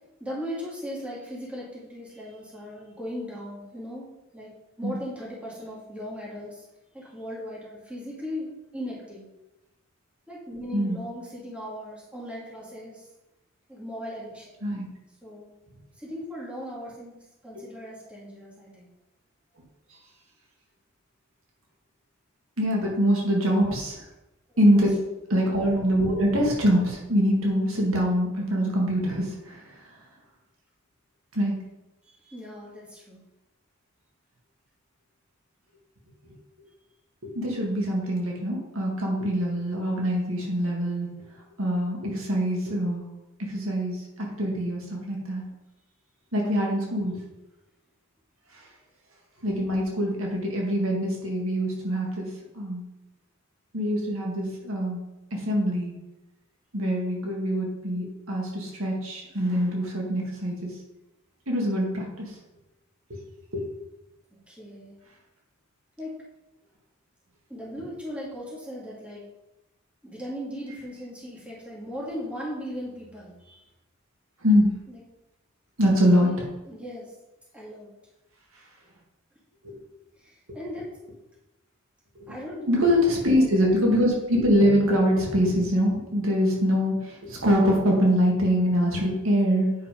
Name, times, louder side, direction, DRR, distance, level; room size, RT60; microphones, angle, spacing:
voice 1, 0.2-4.1 4.3-4.5 4.8-6.7 6.9-9.2 10.3-13.1 13.7-14.6 15.2-15.5 16.0-18.9 25.0-25.1 32.0-33.2 64.5-64.9 66.0-66.2 67.5-69.2 70.0-73.6 74.9-75.0 76.2-76.4 76.7-77.1 77.5-77.9 80.2-80.9 82.3-82.7 82.9-83.5, equal, 5° right, -6 dB, 2.5 m, -38 dB
voice 2, 22.6-24.0 24.6-25.0 25.3-29.6 31.3-31.6 36.2-36.3 37.3-41.1 41.6-43.0 43.4-45.5 46.3-47.2 49.4-52.8 53.7-55.0 55.3-55.9 56.7-60.7 61.5-62.3 63.5-63.6 74.4-74.7 75.8-76.3 79.6-79.8 82.2-82.3 82.7-89.7, equal, 80° right, -1 dB, 2.2 m, -24 dB
8.7 x 5.3 x 5.2 m, 0.97 s
head